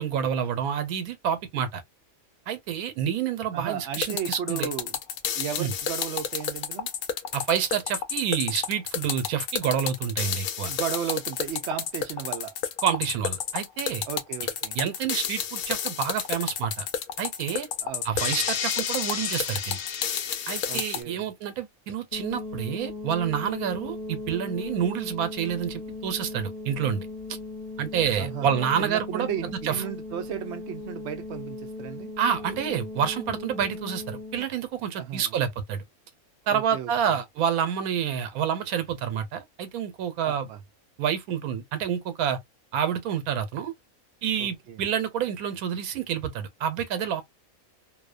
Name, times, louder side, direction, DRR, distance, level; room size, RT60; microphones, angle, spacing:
voice 1, 0.0-1.8 2.5-4.7 5.6-5.7 7.3-10.8 12.8-14.1 14.7-16.9 17.2-17.7 18.0-19.8 20.5-27.1 27.8-29.8 32.2-35.8 36.5-40.5 41.0-42.4 42.7-43.7 44.2-47.2, right 8 dB, 85° right, 1.1 m, -28 dB
voice 2, 3.5-4.9 5.3-6.9 10.6-12.5 14.1-14.8 17.8-18.3 20.7-21.3 28.2-32.1 35.0-35.4 36.5-37.2 40.2-40.6 44.4-44.8, right 9 dB, 65° right, 0.7 m, -35 dB
sound 1, 3.9-21.0, left 8 dB, 90° left, 1.1 m, -30 dB
sound 2, 22.1-34.5, left 2 dB, 40° left, 0.5 m, -38 dB
2.6 x 2.1 x 2.3 m
omnidirectional pair, 1.5 m